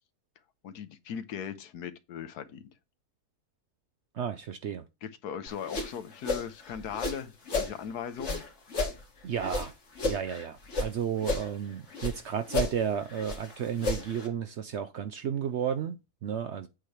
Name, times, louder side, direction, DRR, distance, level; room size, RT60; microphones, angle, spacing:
voice 1, 0.6-2.7 5.0-8.4, left 8 dB, 85° left, 1.4 m, -39 dB
voice 2, 4.1-4.8 9.2-9.7 10.0-16.7, right 8 dB, 65° right, 0.7 m, -33 dB
sound 1, 5.5-7.8 8.2-10.9 11.2-12.2 12.5-14.3, left 3 dB, 50° left, 1.9 m, -33 dB
8.2 x 3.3 x 5.8 m
omnidirectional pair, 1.6 m